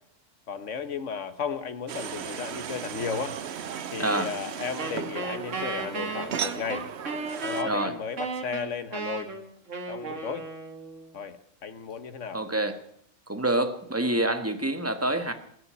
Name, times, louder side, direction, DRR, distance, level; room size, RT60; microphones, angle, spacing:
voice 1, 0.5-3.4 3.9-6.9 7.4-9.3 9.9-10.5 11.1-12.4, left 6 dB, 80° left, 11 dB, 1.5 m, -34 dB
sound 1, 1.9-7.6, right 8 dB, 65° right, 1.1 m, -36 dB
voice 2, 4.0-4.3 7.6-7.9 12.3-12.8 13.3-15.3, right 1 dB, 10° right, 8 dB, 1.3 m, -27 dB
Wind instrument woodwind instrument, 4.8-11.1, right 3 dB, 85° right, 2.1 m, -34 dB
20.0 x 6.9 x 9.7 m, 0.68 s
omnidirectional pair, 1.3 m